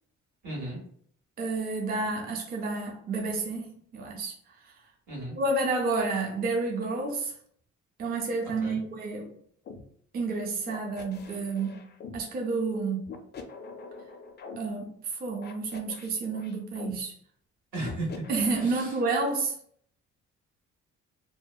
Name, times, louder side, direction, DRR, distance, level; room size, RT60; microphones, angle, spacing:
voice 1, 0.4-0.8 5.1-5.4 8.6-8.8 17.7-18.3 18.6-18.9, right 1 dB, 75° right, 1.4 m, -35 dB
voice 2, 1.4-4.4 4.6-4.7 5.4-7.3 8.0-9.3 10.1-11.9 12.1-13.1 14.6-17.2 18.3-19.5, right 3 dB, 30° right, 0.4 m, -30 dB
sound 1, 9.6-9.8 10.7-12.2 13.0-14.6 15.4-16.9 17.8-19.1, left 5 dB, 35° left, 0.4 m, -44 dB
2.7 x 2.0 x 2.2 m
cardioid pair, 90°, 30 cm